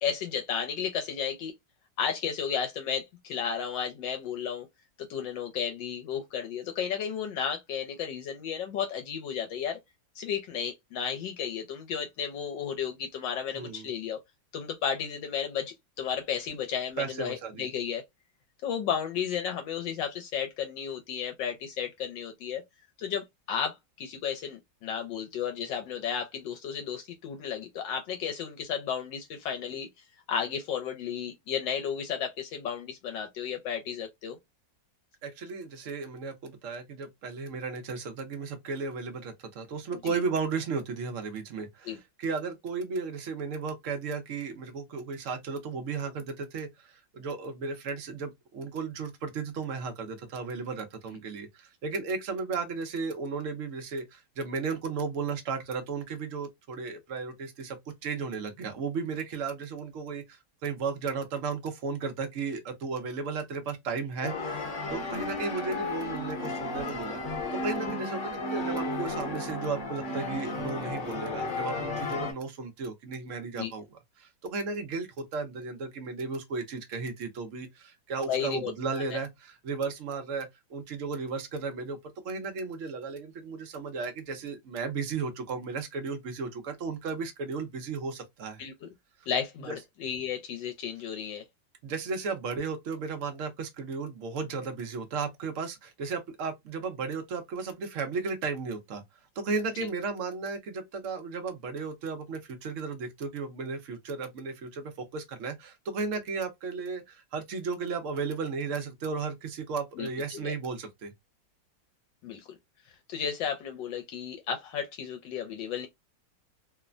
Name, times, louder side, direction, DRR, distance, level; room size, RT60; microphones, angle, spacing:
voice 1, 0.0-1.5 2.0-4.7 5.1-9.8 10.2-14.2 14.5-18.0 18.6-22.6 23.0-29.9 30.3-34.4 39.9-40.2 41.9-42.0 65.0-65.2 73.6-73.7 78.3-78.7 79.1-79.2 88.6-88.9 89.3-91.4 110.0-110.1 110.3-110.5 112.2-112.6 113.1-115.9, left 7 dB, 80° left, 1.3 m, -33 dB
voice 2, 13.5-13.9 17.0-17.7 35.2-67.2 67.5-73.9 74.2-82.0 82.2-88.6 89.7-89.8 91.8-99.0 99.4-111.1, right 4 dB, 65° right, 0.8 m, -35 dB
sound 1, 64.2-72.3, left 2 dB, 50° left, 1.1 m, -33 dB
3.1 x 2.1 x 2.4 m
omnidirectional pair, 2.0 m